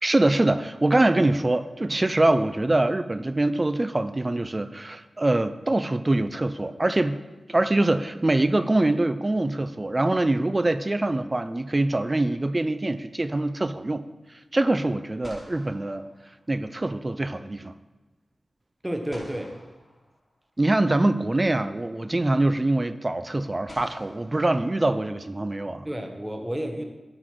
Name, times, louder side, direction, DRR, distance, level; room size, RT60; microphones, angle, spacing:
voice 1, 0.0-7.2 7.5-14.0 14.5-16.1 16.5-17.7 20.6-25.9, right 2 dB, 30° right, 12 dB, 0.5 m, -24 dB
sound 1, 9.7-10.6 14.7-14.8 15.2-16.9 19.1-20.7 22.0-22.1 23.7-25.3, left 1 dB, 25° left, 3.0 m, -50 dB
voice 2, 18.8-19.5 25.8-26.9, equal, 10° right, 4 dB, 1.2 m, -31 dB
11.0 x 3.9 x 6.1 m, 1.2 s
wide cardioid pair, 70°, 0 cm